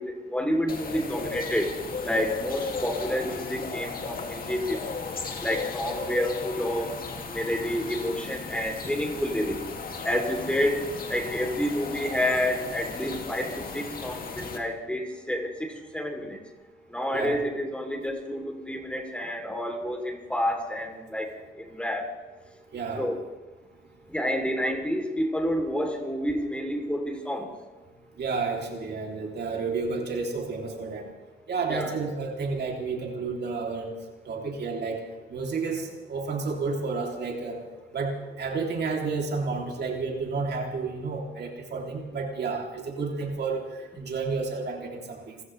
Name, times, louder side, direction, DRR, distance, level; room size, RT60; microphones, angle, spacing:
voice 1, 0.0-1.7 2.0-4.9 5.4-7.0 7.2-9.6 10.0-10.8 11.1-16.4 16.9-21.3 21.5-22.1 23.0-23.2 24.1-27.5 31.7-31.9, equal, 5° left, 2 dB, 3.2 m, -29 dB
sound 1, 0.7-14.6, left 4 dB, 45° left, 2.5 m, -36 dB
voice 2, 22.7-23.1 28.2-31.1 31.5-33.9 34.2-35.0 35.3-37.6 37.9-45.4, right 4 dB, 55° right, 0 dB, 3.1 m, -31 dB
28.5 x 15.0 x 3.3 m, 1.1 s
cardioid pair, 90°, 20 cm